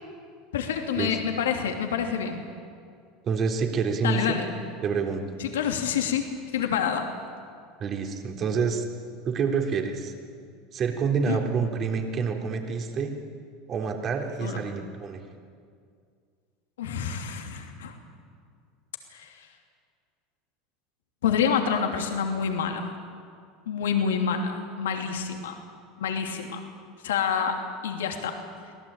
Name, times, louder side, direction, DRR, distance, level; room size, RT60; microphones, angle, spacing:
voice 1, 0.5-2.4 4.0-4.5 5.4-6.3 6.5-7.1 11.3-11.4 14.4-14.6 16.8-17.9 19.1-19.5 21.2-22.9 23.7-25.6 26.0-26.6 27.0-28.4, left 7 dB, 85° left, 4 dB, 2.9 m, -27 dB
voice 2, 3.2-4.4 4.8-5.2 7.8-8.9 9.2-10.1 10.7-13.1 13.7-15.2, right 5 dB, 40° right, 3 dB, 3.6 m, -27 dB
25.5 x 17.5 x 9.0 m, 2.2 s
hypercardioid pair, 95°, 0 cm